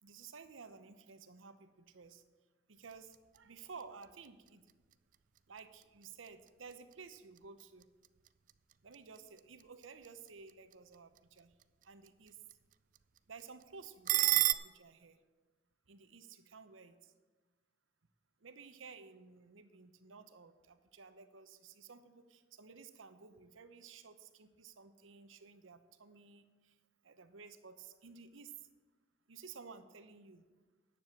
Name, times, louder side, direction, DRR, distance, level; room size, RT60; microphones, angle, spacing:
voice 1, 0.0-2.2 2.7-4.7 5.5-7.9 8.8-11.5 11.8-12.4 13.3-15.2 15.9-17.1 18.4-26.7 27.0-28.5 29.3-30.4, right 5 dB, 90° right, 11 dB, 0.8 m, -54 dB
sound 1, 2.8-14.5, right 15 dB, 40° right, 0.3 m, -40 dB
9.9 x 7.0 x 7.6 m, 1.3 s
head